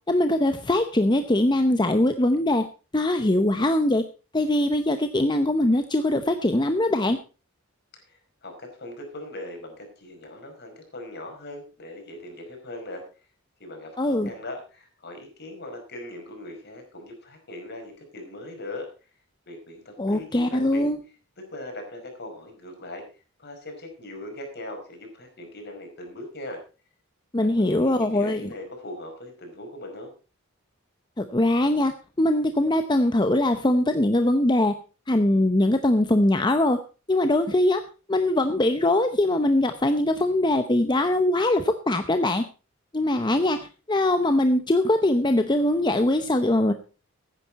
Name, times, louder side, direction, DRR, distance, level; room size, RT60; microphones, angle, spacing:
voice 1, 0.1-2.6 2.9-4.0 4.3-7.2 14.0-14.3 20.0-21.0 27.3-28.5 31.2-31.9 32.2-34.7 35.1-36.8 37.1-37.8 38.1-42.4 42.9-43.6 43.9-46.7, left 1 dB, 20° left, 8 dB, 0.8 m, -22 dB
voice 2, 8.1-13.0 13.6-18.9 19.5-20.9 21.5-23.0 23.4-26.6 27.4-30.1, left 1 dB, 50° left, 4 dB, 5.2 m, -40 dB
15.0 x 10.0 x 4.1 m, 0.34 s
head